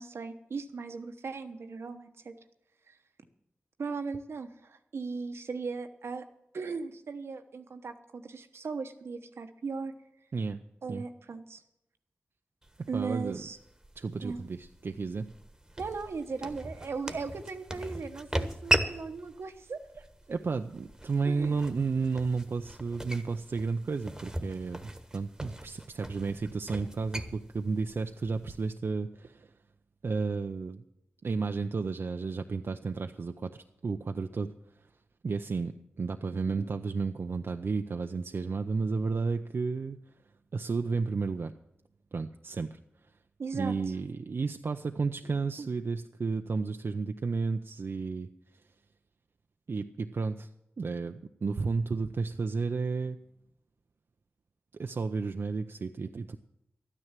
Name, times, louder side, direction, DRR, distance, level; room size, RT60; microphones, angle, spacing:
voice 1, 0.0-2.4 2.9-3.0 3.8-6.3 6.5-9.9 10.8-11.6 12.9-13.6 14.2-14.4 15.8-19.8 21.2-21.6 36.6-36.7 43.4-43.7 45.6-45.7, right 4 dB, 85° right, 7 dB, 1.1 m, -38 dB
sound 1, 12.6-28.7, right 1 dB, 15° right, 1.3 m, -38 dB
voice 2, 12.9-13.4 14.0-15.3 20.3-29.5 30.0-30.8 31.2-34.9 35.2-40.0 40.5-41.5 42.1-42.8 43.5-48.3 49.7-50.5 50.8-53.2 54.7-56.4, right 4 dB, 65° right, 6 dB, 0.6 m, -32 dB
12.0 x 9.9 x 7.4 m, 0.84 s
cardioid pair, 50°, 4 cm